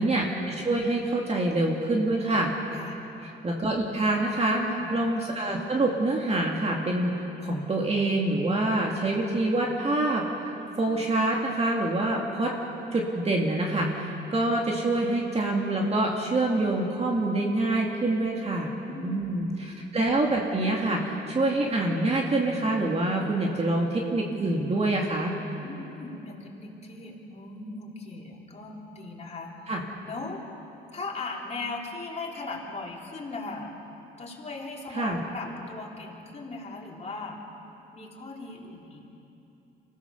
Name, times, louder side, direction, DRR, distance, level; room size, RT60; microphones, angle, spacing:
voice 1, 0.0-2.5 3.4-4.6 4.9-7.1 7.4-10.2 10.8-12.5 12.9-18.7 19.0-25.3 29.7-29.8 35.0-35.2, right 2 dB, 30° right, -1 dB, 2.3 m, -26 dB
voice 2, 2.7-3.0 4.5-5.0 18.9-19.6 25.6-29.6 30.0-30.4 30.9-33.7 34.2-37.4 37.9-39.0, left 3 dB, 35° left, -2 dB, 3.7 m, -38 dB
25.0 x 16.0 x 6.9 m, 3.0 s
cardioid pair, 90°, 20 cm